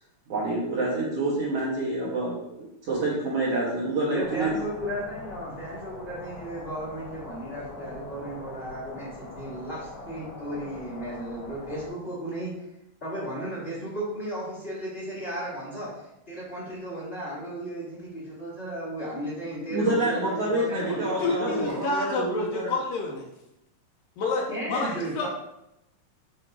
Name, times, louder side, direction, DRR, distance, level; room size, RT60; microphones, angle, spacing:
voice 1, 0.3-2.6 2.8-4.5 19.7-22.7, right 2 dB, 75° right, -6 dB, 1.4 m, -27 dB
voice 2, 4.0-12.5 13.0-21.8 24.5-25.3, right 1 dB, 40° left, -8 dB, 0.8 m, -35 dB
sound 1, 4.2-11.9, left 2 dB, 60° left, 3.0 m, -42 dB
voice 3, 21.2-23.3 24.2-25.3, left 3 dB, 80° left, 0 dB, 2.0 m, -29 dB
8.1 x 2.7 x 4.6 m, 0.85 s
omnidirectional pair, 4.6 m